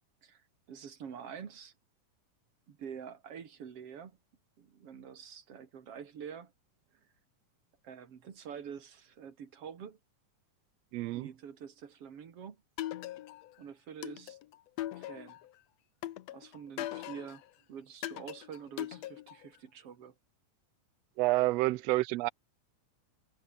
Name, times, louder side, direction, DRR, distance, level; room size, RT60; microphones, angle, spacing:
voice 1, 0.2-1.7 2.7-4.2 4.6-6.5 7.8-10.0 11.1-12.6 13.6-14.4 14.9-15.4 16.3-17.4 17.7-20.1, right 7 dB, 50° right, 3.1 m, -47 dB
voice 2, 10.9-11.3 21.2-22.3, right 19 dB, 90° right, 1.4 m, -28 dB
sound 1, 12.8-13.5 14.0-15.5 16.0-17.4 18.0-19.5, left 14 dB, 70° left, 1.8 m, -40 dB
omnidirectional pair, 3.6 m